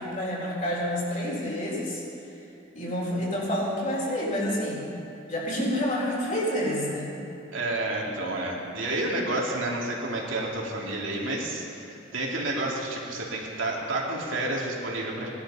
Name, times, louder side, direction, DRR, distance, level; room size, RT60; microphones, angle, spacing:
voice 1, 0.0-2.0 2.7-4.8 5.3-7.2, equal, 40° left, -4 dB, 4.1 m, -28 dB
voice 2, 7.5-15.3, right 2 dB, 75° right, -3 dB, 2.9 m, -30 dB
19.0 x 12.0 x 5.7 m, 2.9 s
head